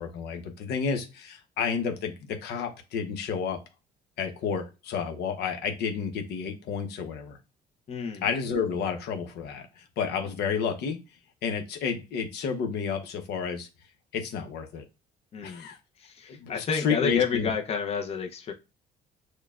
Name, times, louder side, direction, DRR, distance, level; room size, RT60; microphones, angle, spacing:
voice 1, 0.0-2.1 2.4-3.6 4.2-7.4 8.2-9.7 10.0-11.0 11.4-13.7 14.1-14.8 15.4-15.8 16.3-17.5, left 6 dB, 75° left, 6 dB, 0.9 m, -30 dB
voice 2, 7.9-8.2 15.3-15.7 16.0-18.5, left 6 dB, 35° left, 4 dB, 0.7 m, -30 dB
6.4 x 2.2 x 2.4 m, 0.28 s
cardioid pair, 110°, 17 cm